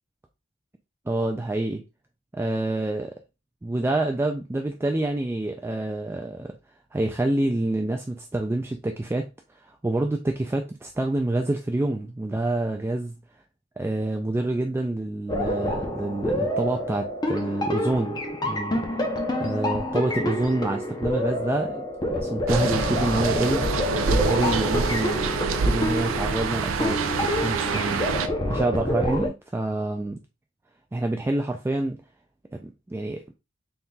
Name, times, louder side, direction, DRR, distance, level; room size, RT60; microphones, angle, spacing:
voice 1, 1.1-1.8 2.3-3.2 3.6-6.6 6.9-13.2 13.8-18.8 19.4-23.7 24.1-28.0 28.5-30.2 30.9-32.0 32.5-33.2, right 2 dB, 10° right, 0.3 m, -27 dB
sound 1, 15.3-29.3, left 1 dB, 20° left, 0.6 m, -28 dB
sound 2, 22.5-28.3, right 4 dB, 85° right, 0.5 m, -26 dB
4.0 x 3.7 x 2.3 m
head